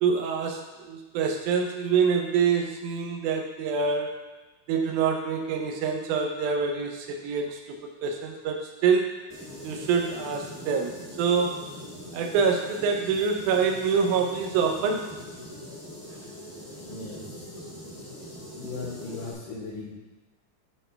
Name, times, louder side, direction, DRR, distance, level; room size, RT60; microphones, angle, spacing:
voice 1, 0.0-4.1 4.7-9.1 9.6-11.6 12.1-15.1, right 6 dB, 75° right, 2 dB, 2.1 m, -26 dB
sound 1, 9.3-19.3, left 1 dB, 10° left, 0.7 m, -42 dB
voice 2, 16.7-17.5 18.6-19.9, left 3 dB, 80° left, -4 dB, 2.9 m, -38 dB
10.0 x 3.4 x 3.3 m, 1.2 s
omnidirectional pair, 3.8 m